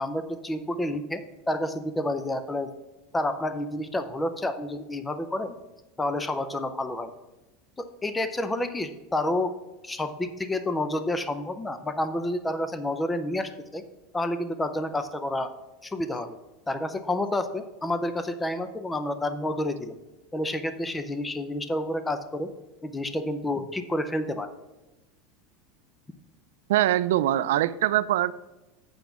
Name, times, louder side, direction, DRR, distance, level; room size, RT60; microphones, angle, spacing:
voice 1, 0.0-2.7 3.1-5.5 6.0-7.1 7.8-9.6 9.8-13.8 14.1-15.5 15.8-16.4 16.7-20.0 20.3-22.5 22.8-24.5, left 1 dB, 10° left, 10 dB, 0.5 m, -29 dB
voice 2, 26.7-28.3, right 13 dB, 90° right, 15 dB, 0.4 m, -23 dB
8.1 x 5.2 x 5.8 m, 1.0 s
supercardioid pair, 165°, 0 cm